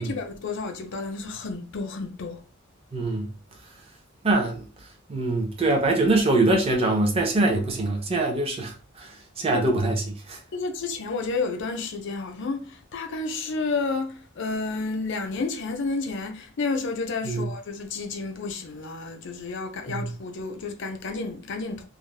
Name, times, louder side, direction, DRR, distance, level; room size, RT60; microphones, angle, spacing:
voice 1, 0.0-2.4 9.5-9.7 10.5-21.8, left 3 dB, 65° left, 0.5 m, -31 dB
voice 2, 2.9-3.3 4.2-4.7 5.1-8.7 9.0-9.1 9.4-10.0 10.3-10.4 17.3-17.5 19.9-20.0, right 2 dB, 30° right, 0.5 m, -23 dB
2.4 x 2.0 x 3.2 m
head